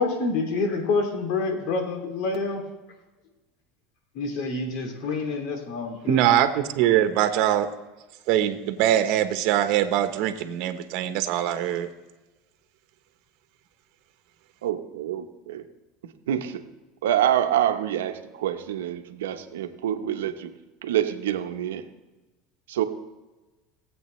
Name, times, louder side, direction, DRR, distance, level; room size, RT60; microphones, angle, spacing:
voice 1, 0.0-2.6 4.1-6.2, left 3 dB, 65° left, 4 dB, 2.5 m, -27 dB
voice 2, 6.1-7.7 8.3-11.9, right 11 dB, 65° right, 9 dB, 1.0 m, -22 dB
voice 3, 14.6-15.6 16.0-16.6 17.0-20.5 20.8-21.9 22.7-22.8, right 11 dB, 90° right, 7 dB, 0.9 m, -26 dB
20.5 x 7.9 x 3.2 m, 1.2 s
supercardioid pair, 105°, 0 cm